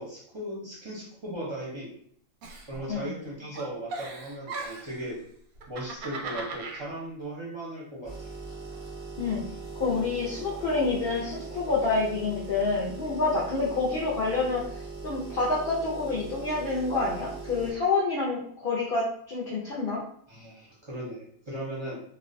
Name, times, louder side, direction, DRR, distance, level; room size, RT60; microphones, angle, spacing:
voice 1, 0.0-1.9 2.7-5.2 5.7-8.3 20.3-22.0, right 1 dB, 35° right, -6 dB, 0.5 m, -37 dB
Giggle, 2.4-3.3 3.5-5.0 5.6-6.8, right 3 dB, 85° right, 1.0 m, -38 dB
sound 1, 8.0-17.7, right 4 dB, 15° left, 0.8 m, -40 dB
voice 2, 9.8-14.6 15.0-20.0, left 3 dB, 65° left, -5 dB, 0.5 m, -28 dB
2.4 x 2.1 x 2.5 m, 0.63 s
omnidirectional pair, 1.5 m